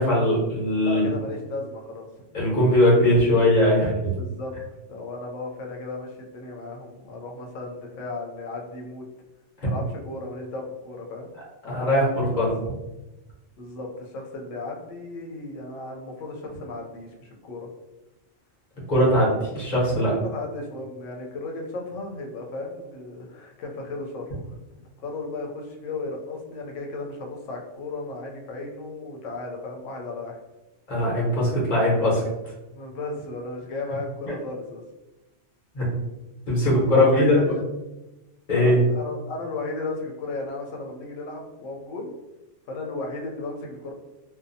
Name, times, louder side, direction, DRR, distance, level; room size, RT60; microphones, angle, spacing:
voice 1, 0.0-1.0 2.3-4.1 9.6-9.7 11.7-12.7 18.9-20.1 30.9-32.2 35.7-35.8 36.5-37.4 38.5-38.8, left 1 dB, 40° left, -6 dB, 1.1 m, -20 dB
voice 2, 0.8-2.1 4.2-4.5 4.9-9.0 9.6-11.3 11.6-12.0 13.6-17.7 20.1-24.5 25.0-30.4 32.7-34.8 36.9-37.6 38.5-42.1 42.7-43.9, left 2 dB, 80° left, 1 dB, 0.9 m, -35 dB
2.7 x 2.1 x 2.6 m, 1.0 s
omnidirectional pair, 1.3 m